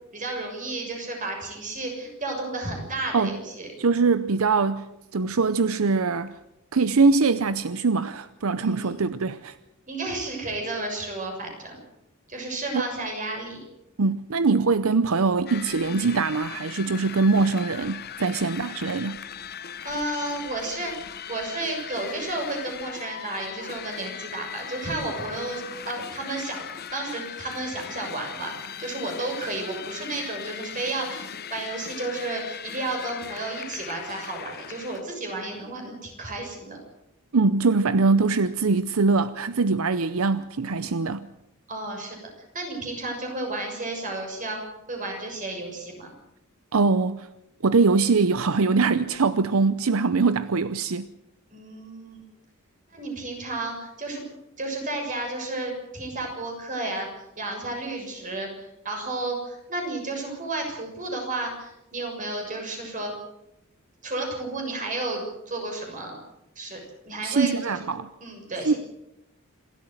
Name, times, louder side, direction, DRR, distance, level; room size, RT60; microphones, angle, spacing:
voice 1, 0.1-3.7 8.6-9.0 9.9-11.8 12.3-13.6 19.8-20.9 21.3-36.8 41.7-44.6 44.9-46.1 51.5-52.2 52.9-54.2 54.6-57.1 57.3-63.1 64.0-66.2 66.5-66.8 67.0-67.8 68.2-68.8, right 2 dB, 40° right, 6.8 m, -32 dB
voice 2, 3.8-4.9 5.1-6.3 6.7-9.6 12.7-12.9 14.0-19.2 37.3-41.3 46.7-47.3 47.6-51.1 67.2-68.1 68.6-68.7, right 4 dB, 80° right, 0.7 m, -22 dB
sound 1, 15.5-35.0, left 8 dB, 50° left, 0.9 m, -39 dB
27.0 x 13.0 x 8.0 m
head